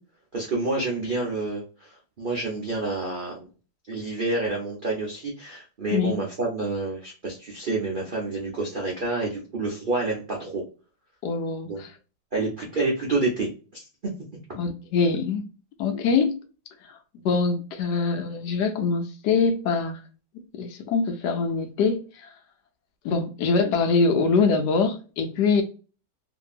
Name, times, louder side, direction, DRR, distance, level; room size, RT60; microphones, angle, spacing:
voice 1, 0.3-3.5 3.9-10.6 11.7-11.8 12.3-14.1, right 3 dB, 85° right, 0.4 m, -28 dB
voice 2, 11.2-11.9 14.6-15.4 15.8-16.4 16.8-17.0 17.2-20.0 20.5-22.3 23.0-25.6, left 4 dB, 75° left, 1.1 m, -24 dB
2.8 x 2.6 x 2.4 m
omnidirectional pair, 2.0 m